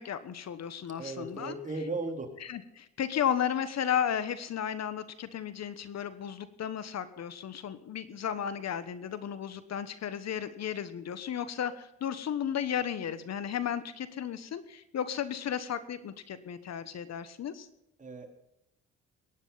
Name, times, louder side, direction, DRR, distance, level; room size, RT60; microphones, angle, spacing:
voice 1, 0.0-1.5 2.4-17.7, left 9 dB, 60° left, 13 dB, 1.3 m, -34 dB
voice 2, 1.0-2.3 18.0-18.3, right 3 dB, 25° right, 4 dB, 3.8 m, -36 dB
22.0 x 9.9 x 5.7 m, 0.85 s
cardioid pair, 90°, 30 cm